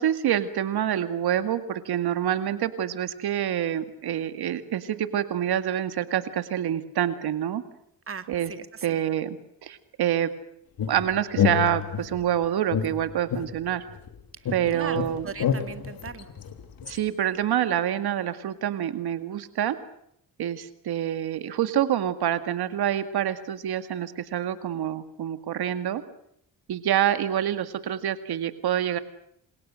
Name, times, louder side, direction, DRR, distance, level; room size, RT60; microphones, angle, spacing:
voice 1, 0.0-7.6 8.3-8.5 8.8-10.3 10.9-13.9 14.5-15.3 16.8-19.8 20.4-26.0 26.7-29.0, right 10 dB, 80° right, 11 dB, 2.1 m, -27 dB
voice 2, 8.1-9.0 14.7-16.3, right 6 dB, 35° right, 10 dB, 2.2 m, -38 dB
sound 1, 10.8-12.3 12.7-14.1 14.5-17.0, left 8 dB, 65° left, 3.3 m, -28 dB
28.5 x 28.0 x 6.4 m, 0.73 s
cardioid pair, 100°, 38 cm